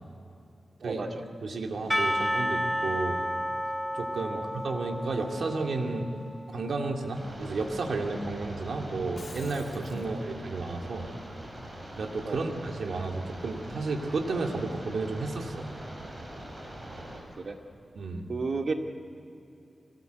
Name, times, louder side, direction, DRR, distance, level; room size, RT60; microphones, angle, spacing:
voice 1, 0.8-1.2 4.3-4.5 10.0-10.2 12.2-12.4 16.9-17.0 17.4-17.6 18.3-18.7, right 4 dB, 60° right, 3 dB, 2.2 m, -33 dB
voice 2, 1.4-3.2 3.9-6.1 6.5-11.1 12.0-15.7 17.9-18.3, right 3 dB, 85° right, 2 dB, 2.3 m, -32 dB
Percussion / Church bell, 1.9-6.7, equal, ahead, 0.5 m, -31 dB
sound 1, 7.1-17.2, right 1 dB, 30° right, 6.8 m, -43 dB
Shatter, 9.2-10.1, left 3 dB, 60° left, 3.2 m, -48 dB
24.5 x 19.0 x 8.1 m, 2.7 s
wide cardioid pair, 75°, 0 cm